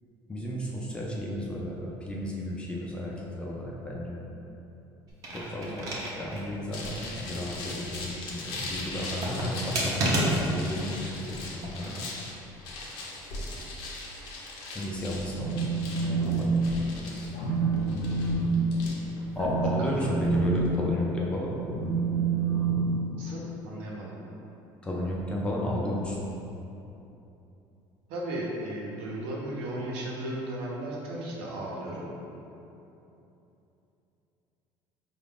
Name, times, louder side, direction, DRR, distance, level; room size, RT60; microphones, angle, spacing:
voice 1, 0.3-4.2 5.3-5.9 6.1-12.0 14.7-17.3 19.4-21.5 24.8-26.3, left 1 dB, 10° left, -4 dB, 0.3 m, -33 dB
sound 1, 5.1-6.5 6.9-7.0 8.9-10.7 11.6-12.0, right 1 dB, 40° right, 0.6 m, -30 dB
sound 2, 6.7-20.7, left 2 dB, 55° left, 0.6 m, -40 dB
Telephone, 15.4-16.4 16.7-17.0 17.4-23.5, right 3 dB, 90° left, 0.7 m, -28 dB
voice 2, 23.2-24.2 28.1-32.1, right 1 dB, 80° right, -4 dB, 0.9 m, -35 dB
4.6 x 2.4 x 3.5 m, 2.9 s
cardioid pair, 180°, 9 cm